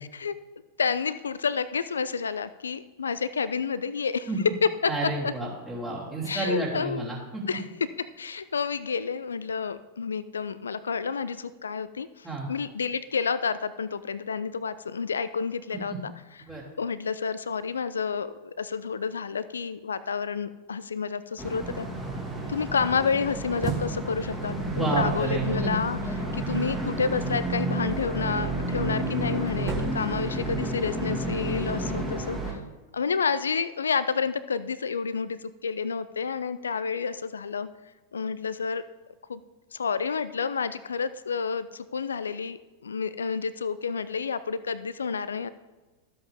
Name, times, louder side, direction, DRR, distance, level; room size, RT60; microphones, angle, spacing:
voice 1, 0.8-4.3 4.6-5.3 6.3-7.1 7.5-7.6 8.0-16.1 16.8-21.9 22.5-26.0 26.3-32.6 32.9-37.7 38.1-38.8 39.3-39.4 39.7-45.5, left 5 dB, 70° left, 15 dB, 0.4 m, -30 dB
voice 2, 4.9-7.6 12.2-12.5 16.5-16.6 24.6-25.7, right 2 dB, 15° right, -6 dB, 3.2 m, -30 dB
sound 1, 21.4-32.5, right 1 dB, ahead, 2.1 m, -31 dB
sound 2, 23.0-26.2 28.4-31.0, right 5 dB, 30° right, 1.5 m, -38 dB
13.0 x 7.8 x 3.6 m, 1.1 s
figure-of-eight pair, 90°, 0 cm